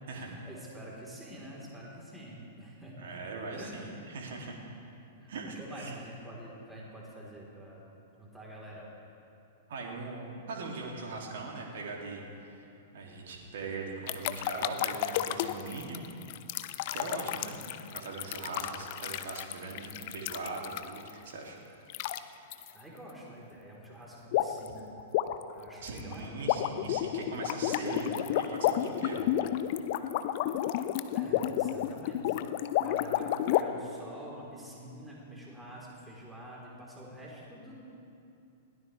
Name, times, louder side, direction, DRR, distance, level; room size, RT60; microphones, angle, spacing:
voice 1, 0.1-3.2 3.5-4.0 5.2-7.8 8.2-8.9 22.7-24.9 25.5-26.5 27.6-28.1 31.1-32.4 32.8-37.8, equal, 10° right, -4 dB, 3.8 m, -47 dB
voice 2, 3.0-4.5 5.3-6.0 9.7-12.2 12.6-16.0 16.9-17.7 17.9-21.6 25.8-29.3, right 3 dB, 60° right, -1 dB, 2.7 m, -40 dB
sound 1, 14.1-21.1 21.9-22.2 22.5-22.7 24.3-24.7 25.0-33.6, left 13 dB, 50° left, 0.6 m, -31 dB
21.0 x 17.0 x 3.4 m, 2.7 s
figure-of-eight pair, 100°, 0 cm